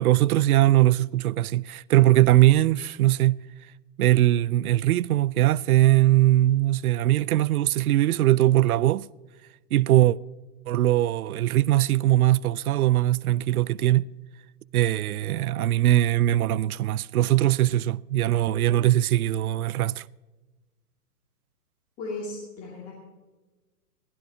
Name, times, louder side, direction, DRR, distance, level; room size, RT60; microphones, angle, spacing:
voice 1, 0.0-3.4 4.0-9.1 9.7-10.2 10.7-14.0 14.7-20.0, right 14 dB, 65° right, 0.5 m, -21 dB
voice 2, 22.0-22.9, left 2 dB, 15° left, 2.3 m, -35 dB
21.0 x 15.5 x 2.8 m
hypercardioid pair, 170°, 49 cm